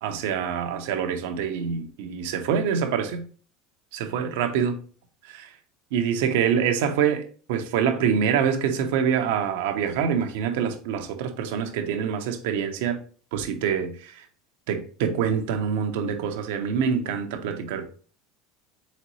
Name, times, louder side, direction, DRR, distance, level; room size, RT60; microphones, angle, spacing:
voice 1, 0.0-3.2 3.9-4.8 5.3-5.5 5.9-13.0 13.3-14.2 14.7-17.8, right 7 dB, 75° right, 0.7 m, -25 dB
4.0 x 3.7 x 3.1 m
supercardioid pair, 105°, 0 cm